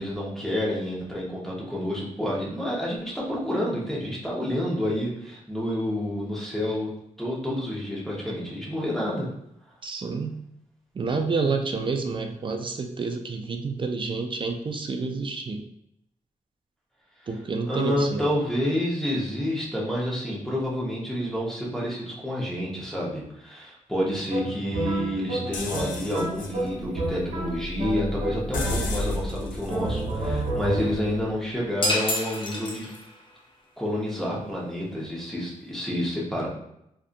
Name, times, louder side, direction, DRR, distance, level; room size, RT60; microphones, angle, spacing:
voice 1, 0.0-6.9 7.2-9.3 17.7-32.9 33.8-36.5, equal, ahead, -5 dB, 1.0 m, -29 dB
voice 2, 9.8-10.4 10.9-15.7 17.3-18.3, right 4 dB, 40° right, 4 dB, 0.4 m, -29 dB
sound 1, 24.3-29.3 29.7-31.2, right 1 dB, 75° right, 1.0 m, -31 dB
sound 2, 25.5-31.3, left 2 dB, 80° left, 0.5 m, -34 dB
sound 3, 31.8-33.3, left 1 dB, 35° left, 0.7 m, -28 dB
2.6 x 2.4 x 2.5 m, 0.76 s
cardioid pair, 90°, 14 cm